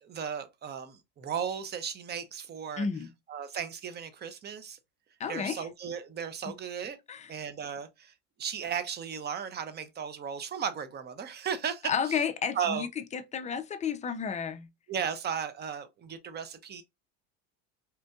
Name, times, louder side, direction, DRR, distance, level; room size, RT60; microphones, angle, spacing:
voice 1, 0.0-2.9 3.3-4.8 5.3-7.0 7.3-8.1 8.4-12.2 12.5-12.9 14.9-16.8, right 7 dB, 25° right, 0.6 m, -35 dB
voice 2, 2.8-3.1 5.2-5.7 6.4-6.5 7.1-7.3 11.8-12.9 13.1-14.7, left 6 dB, 20° left, 0.4 m, -32 dB
4.3 x 2.6 x 2.2 m
supercardioid pair, 110°, 38 cm